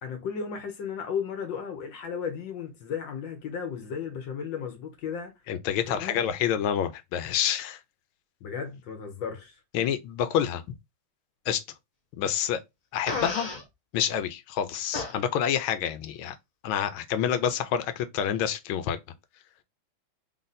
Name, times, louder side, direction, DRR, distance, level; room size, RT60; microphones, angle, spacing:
voice 1, 0.0-5.3 5.9-6.2 8.4-9.6, left 6 dB, 70° left, 1.4 m, -34 dB
voice 2, 5.5-7.8 9.7-10.6 11.5-11.6 12.2-12.6 12.9-13.5 13.9-16.4 16.6-19.0, left 9 dB, 90° left, 1.4 m, -28 dB
Fart, 13.1-13.6 14.9-15.1, left 3 dB, 30° left, 0.7 m, -31 dB
3.7 x 2.6 x 4.0 m
omnidirectional pair, 2.2 m